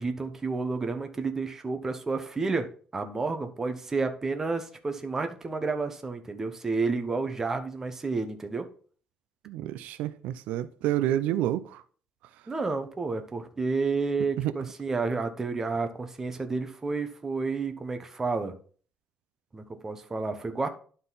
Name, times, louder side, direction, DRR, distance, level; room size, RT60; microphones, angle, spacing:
voice 1, 0.0-2.7 2.9-8.7 12.5-18.5 19.5-20.7, right 4 dB, 20° right, 0.9 m, -30 dB
voice 2, 9.5-11.8 14.4-14.5, right 12 dB, 90° right, 0.5 m, -29 dB
11.5 x 3.9 x 4.0 m
cardioid pair, 150°, 2 cm